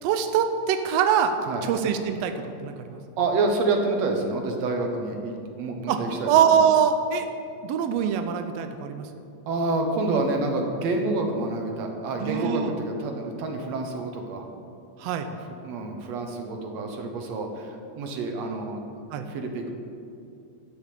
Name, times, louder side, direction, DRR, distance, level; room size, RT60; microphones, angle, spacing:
voice 1, 0.0-1.3 1.6-3.0 5.9-7.3 7.6-9.1 12.2-12.7 15.0-15.3 19.1-19.3, right 8 dB, 85° right, 7 dB, 1.4 m, -23 dB
voice 2, 3.2-6.3 9.5-14.5 15.6-19.7, right 3 dB, 65° right, 3 dB, 2.1 m, -28 dB
12.0 x 5.2 x 8.3 m, 2.6 s
omnidirectional pair, 3.5 m